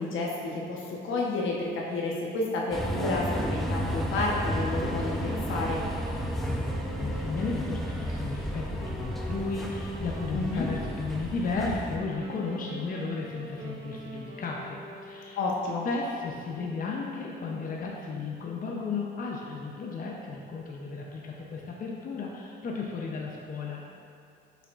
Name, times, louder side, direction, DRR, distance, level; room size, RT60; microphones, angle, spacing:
voice 1, 0.0-5.8 10.3-10.7 15.4-15.9, left 2 dB, 80° left, -3 dB, 1.2 m, -30 dB
sound 1, 2.7-12.0, equal, ahead, 0.7 m, -32 dB
Wind instrument woodwind instrument, 4.5-15.4, equal, 80° right, 0.9 m, -44 dB
voice 2, 6.5-15.4 15.8-23.8, left 4 dB, 45° left, -2 dB, 0.7 m, -34 dB
7.2 x 5.8 x 2.5 m, 2.5 s
cardioid pair, 90°, 20 cm